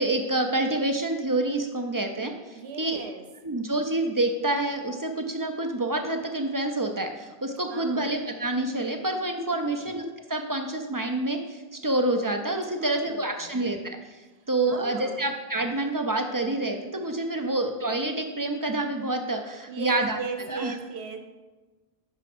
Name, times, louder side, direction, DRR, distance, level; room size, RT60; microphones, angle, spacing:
voice 1, 0.0-3.0 3.4-14.2 14.5-20.2 20.5-20.7, right 2 dB, 35° right, 4 dB, 0.3 m, -28 dB
voice 2, 2.5-3.2 7.7-8.1 9.5-9.8 12.7-13.6 14.6-15.3 17.3-17.5 19.7-21.2, right 5 dB, 90° right, 6 dB, 1.1 m, -37 dB
5.8 x 4.6 x 6.0 m, 1.2 s
omnidirectional pair, 1.1 m